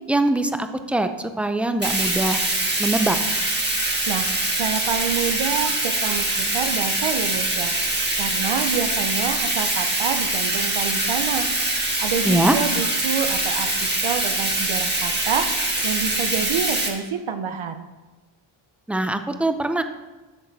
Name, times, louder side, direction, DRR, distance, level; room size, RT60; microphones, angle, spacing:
voice 1, 0.1-2.4 2.8-3.2 12.2-12.6 18.9-19.8, right 1 dB, 5° right, 8 dB, 0.4 m, -22 dB
Bathtub (filling or washing), 1.8-16.9, right 2 dB, 20° right, 1.6 m, -24 dB
voice 2, 4.6-11.5 12.0-13.7 14.0-17.9, right 7 dB, 70° right, 8 dB, 0.8 m, -27 dB
12.0 x 6.6 x 4.0 m, 1.2 s
wide cardioid pair, 125°, 50 cm